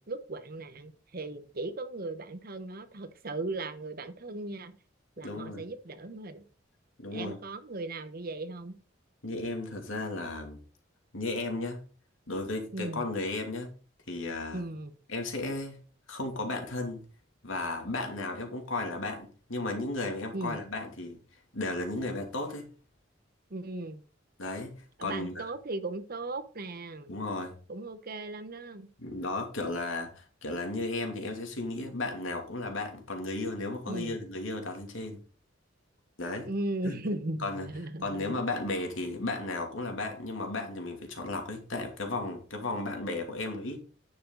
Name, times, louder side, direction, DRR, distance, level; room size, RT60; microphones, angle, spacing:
voice 1, 0.0-4.8 5.2-6.5 7.1-8.8 12.7-13.1 14.5-14.9 20.3-20.6 23.5-24.0 25.0-27.1 27.7-28.9 33.9-34.2 36.4-38.4, right 2 dB, 50° right, 1.0 m, -37 dB
voice 2, 5.2-5.6 7.0-7.4 9.2-10.6 11.1-11.8 12.3-13.7 14.1-14.6 15.1-15.8 16.1-17.0 17.4-21.2 21.5-22.7 24.4-25.4 27.1-27.5 29.0-35.2 36.2-36.5 36.8-37.0 37.4-37.7 38.0-43.8, left 2 dB, 85° left, 2.8 m, -34 dB
10.0 x 7.0 x 4.0 m
head